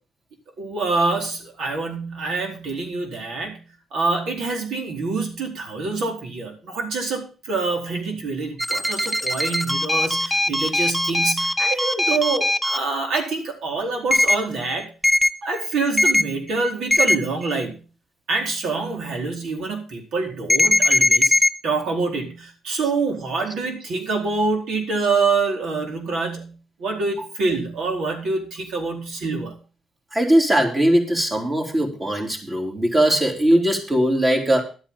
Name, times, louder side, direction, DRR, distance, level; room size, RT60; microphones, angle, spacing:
voice 1, 0.6-3.6 3.9-14.9 15.4-17.8 18.3-21.4 21.6-29.6, right 3 dB, 75° right, 2 dB, 4.3 m, -26 dB
sound 1, 8.6-12.8 14.1-14.4 15.0-15.3 16.0-16.2 16.9-17.2 20.5-21.5, left 1 dB, 5° left, 0.8 m, -19 dB
voice 2, 30.1-34.6, right 1 dB, 25° right, 1 dB, 3.9 m, -20 dB
12.0 x 8.6 x 5.7 m, 0.36 s
cardioid pair, 90°, 0 cm